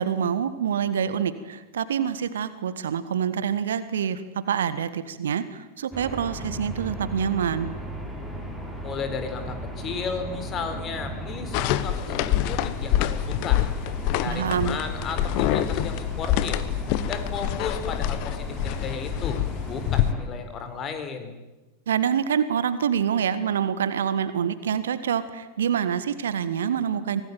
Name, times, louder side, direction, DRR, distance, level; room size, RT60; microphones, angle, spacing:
voice 1, 0.0-7.7 14.2-14.8 21.9-27.2, right 8 dB, 65° right, 13 dB, 1.5 m, -26 dB
sound 1, 5.9-20.2, equal, 5° left, 6.3 m, -36 dB
voice 2, 8.8-13.6 14.2-16.6 17.1-19.4 19.7-21.4, left 5 dB, 30° left, 8 dB, 4.1 m, -34 dB
sound 2, 11.5-20.1, left 12 dB, 45° left, 1.2 m, -26 dB
24.5 x 18.5 x 9.4 m, 1.1 s
figure-of-eight pair, 90°, 0 cm